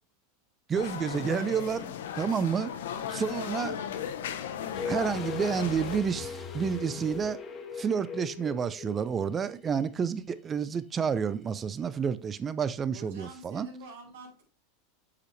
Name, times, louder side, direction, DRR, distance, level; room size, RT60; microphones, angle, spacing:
sound 1, 0.7-6.0, left 9 dB, 80° left, 0.9 m, -36 dB
voice 1, 0.7-2.7 3.1-3.8 4.8-7.4 7.8-13.7, right 6 dB, 25° right, 0.7 m, -30 dB
sound 2, 4.7-9.6 9.8-9.9, left 6 dB, 30° left, 1.5 m, -39 dB
voice 2, 12.9-14.4, right 2 dB, 75° right, 4.0 m, -47 dB
8.3 x 5.4 x 3.3 m
hypercardioid pair, 110°, 0 cm